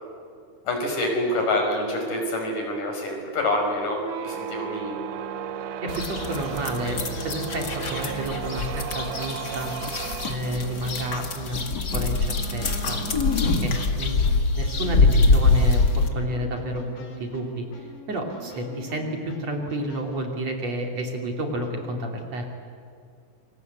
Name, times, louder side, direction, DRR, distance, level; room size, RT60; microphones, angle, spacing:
voice 1, 0.6-5.0, left 1 dB, 60° left, 2 dB, 6.9 m, -26 dB
sound 1, 4.0-14.3, right 10 dB, 70° right, 2.4 m, -36 dB
voice 2, 5.8-9.7 10.2-11.6 11.9-13.0 13.4-13.7 14.0-15.8 16.1-16.8 17.2-22.5, right 1 dB, 50° right, 2 dB, 3.9 m, -31 dB
sound 2, 5.9-16.1, left 3 dB, 35° left, 1.9 m, -24 dB
sound 3, 6.1-20.3 21.6-22.2, right 1 dB, 85° left, 5.5 m, -46 dB
29.0 x 24.5 x 8.3 m, 2.4 s
omnidirectional pair, 4.1 m